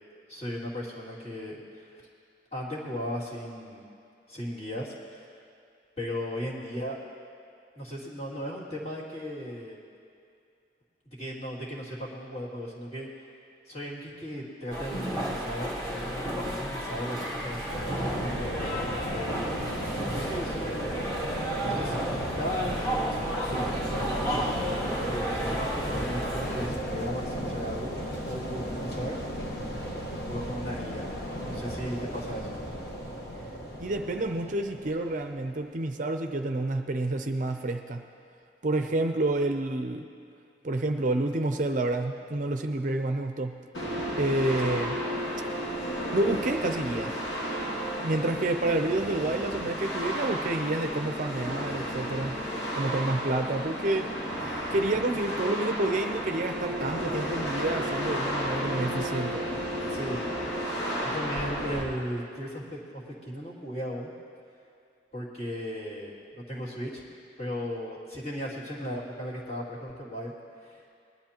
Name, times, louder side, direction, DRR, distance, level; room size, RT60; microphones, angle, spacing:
voice 1, 0.3-2.0 2.5-3.9 4.3-5.3 6.0-7.0 7.7-9.8 11.1-13.1 13.7-17.7 18.2-19.4 19.7-20.9 21.6-22.0 22.3-24.6 24.9-27.9 28.3-29.2 30.3-31.1 31.5-32.6 44.6-44.7 59.9-60.2 61.0-64.1 65.1-67.0 67.4-70.3 70.6-70.8, equal, 35° left, -6 dB, 2.5 m, -36 dB
sound 1, 14.7-26.7, right 1 dB, 20° left, 1.6 m, -32 dB
sound 2, 17.7-35.6, equal, 60° left, 1.3 m, -35 dB
voice 2, 33.8-38.1 38.6-40.1 40.6-43.6 44.2-44.9 46.1-47.2 48.0-52.4 52.7-54.1 54.7-59.6, right 2 dB, 45° right, 5 dB, 0.5 m, -29 dB
sound 3, 43.7-61.8, equal, 75° left, 2.2 m, -32 dB
20.0 x 12.0 x 3.0 m, 2.5 s
head